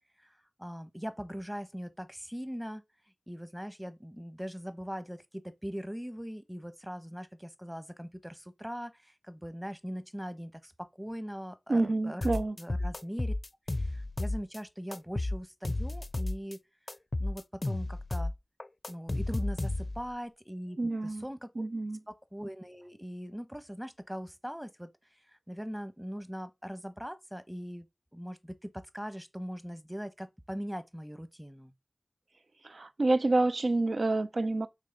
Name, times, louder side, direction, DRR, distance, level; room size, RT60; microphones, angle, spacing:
voice 1, 0.6-2.8 3.3-13.3 13.8-16.6 17.2-18.3 18.9-21.5 22.1-24.9 25.5-27.9 28.1-31.7, equal, 5° right, 1.0 m, -41 dB
voice 2, 11.7-12.6 20.8-21.2 21.6-22.0 32.6-34.7, right 2 dB, 75° right, 0.6 m, -28 dB
sound 1, 12.2-14.6 14.9-16.6 16.9-20.1, left 2 dB, 50° left, 0.4 m, -33 dB
6.5 x 3.3 x 5.2 m
wide cardioid pair, 50°, 0 cm